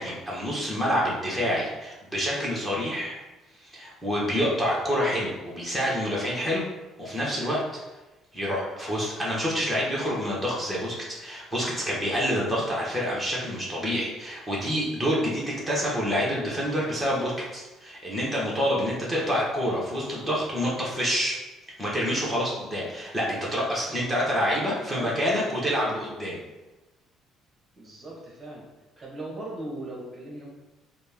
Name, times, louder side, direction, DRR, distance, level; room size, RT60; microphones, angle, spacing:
voice 1, 0.0-3.2 3.6-6.7 7.0-7.6 8.3-21.4 21.8-26.4, equal, ahead, -6 dB, 1.0 m, -27 dB
voice 2, 24.6-25.2 27.7-28.6 29.0-30.5, right 1 dB, 25° right, -4 dB, 0.9 m, -37 dB
4.1 x 2.1 x 3.4 m, 1.1 s
cardioid pair, 115°, 0 cm